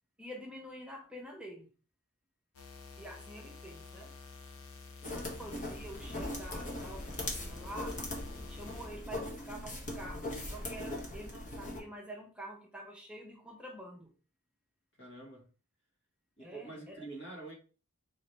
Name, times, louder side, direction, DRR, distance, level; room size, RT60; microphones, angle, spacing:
voice 1, 0.2-1.7 3.0-4.1 5.1-8.0 8.5-14.1 16.4-17.1, right 1 dB, 5° right, 0.7 m, -47 dB
sound 1, 2.5-8.9, left 4 dB, 70° left, 0.7 m, -49 dB
sound 2, 5.0-11.8, left 1 dB, 35° left, 1.1 m, -40 dB
voice 2, 5.8-6.2 15.0-15.5 16.4-17.5, right 2 dB, 55° left, 1.6 m, -47 dB
4.1 x 2.9 x 3.2 m
head